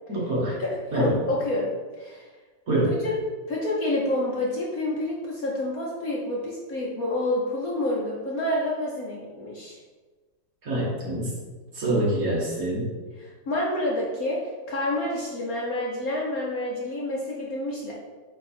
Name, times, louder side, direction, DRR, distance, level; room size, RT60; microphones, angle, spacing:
voice 1, 0.1-0.6 0.9-1.1 2.7-3.0 10.6-11.3 11.8-12.9, right 1 dB, 45° right, -5 dB, 1.8 m, -25 dB
voice 2, 0.6-1.7 2.0-2.3 2.8-3.1 3.5-9.8 11.8-12.1 13.2-17.9, left 1 dB, 55° left, -4 dB, 1.2 m, -28 dB
8.4 x 3.0 x 4.3 m, 1.4 s
omnidirectional pair, 2.2 m